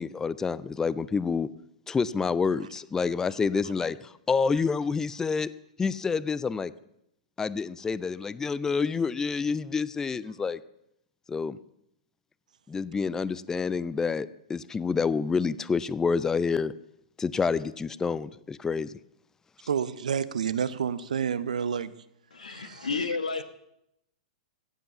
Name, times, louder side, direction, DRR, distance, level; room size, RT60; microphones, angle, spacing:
voice 1, 0.0-1.5 1.9-5.5 5.8-6.7 7.4-10.6 11.3-11.6 12.7-16.7 17.2-18.9, left 5 dB, 15° left, 0.5 m, -28 dB
voice 2, 19.7-21.9 22.4-22.7, right 7 dB, 75° right, 0.8 m, -29 dB
voice 3, 22.3-23.4, left 4 dB, 80° left, 1.4 m, -31 dB
16.5 x 7.8 x 6.9 m
figure-of-eight pair, 110°, 4 cm